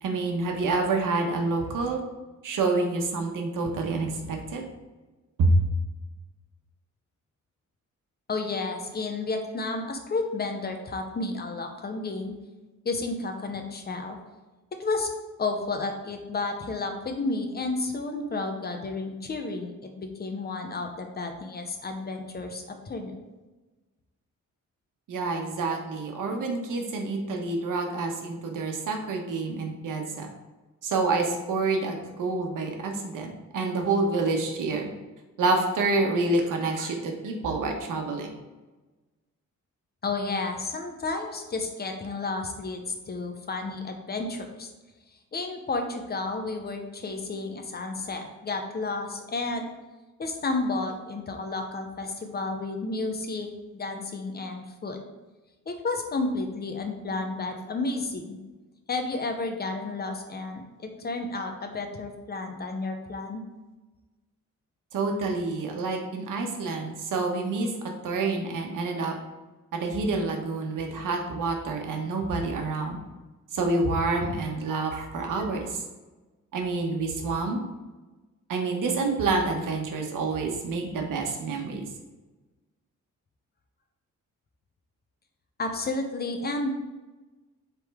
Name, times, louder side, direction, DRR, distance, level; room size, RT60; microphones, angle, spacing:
voice 1, 0.0-2.0 2.4-4.6 5.4-5.5 25.1-30.3 30.8-34.9 35.4-38.3 64.9-67.7 68.0-69.1 69.7-73.0 73.5-75.8 76.5-77.6 78.5-81.8, right 3 dB, 75° right, 2 dB, 1.2 m, -28 dB
voice 2, 8.3-12.3 12.8-14.2 14.8-15.1 15.4-23.2 40.0-44.7 45.3-49.7 50.2-53.5 53.7-55.0 55.7-58.4 58.9-63.4 85.6-86.7, left 3 dB, 30° left, 5 dB, 0.7 m, -31 dB
7.8 x 3.8 x 3.5 m, 1.2 s
wide cardioid pair, 180°, 32 cm